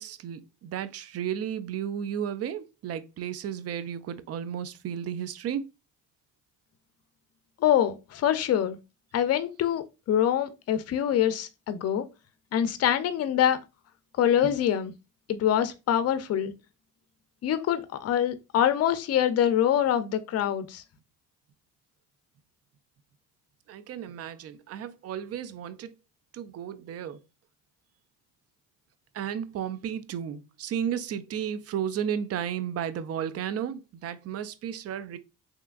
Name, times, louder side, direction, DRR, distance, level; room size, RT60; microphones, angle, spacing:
voice 1, 0.0-5.7 14.4-14.5 23.7-25.9 26.3-27.2 29.1-35.2, right 9 dB, 45° right, 0.5 m, -33 dB
voice 2, 7.6-8.8 9.1-12.1 12.5-13.6 14.2-14.9 15.3-16.5 17.4-20.8, left 10 dB, 45° left, 0.5 m, -25 dB
3.3 x 2.8 x 2.3 m
supercardioid pair, 70°, 35 cm